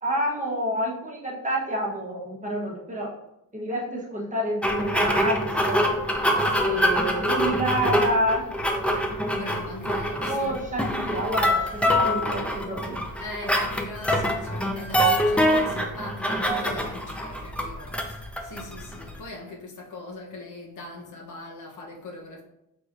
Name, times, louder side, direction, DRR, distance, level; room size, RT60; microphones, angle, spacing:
voice 1, 0.0-3.2 3.5-5.9 6.6-8.4 10.2-13.0, equal, 25° right, 1.0 m, -28 dB
sound 1, 4.6-19.2, equal, 5° left, 0.5 m, -25 dB
voice 2, 6.1-6.9 9.4-10.6 13.2-22.4, left 2 dB, 65° left, 1.0 m, -40 dB
4.7 x 3.6 x 2.6 m
cardioid pair, 100°, 32 cm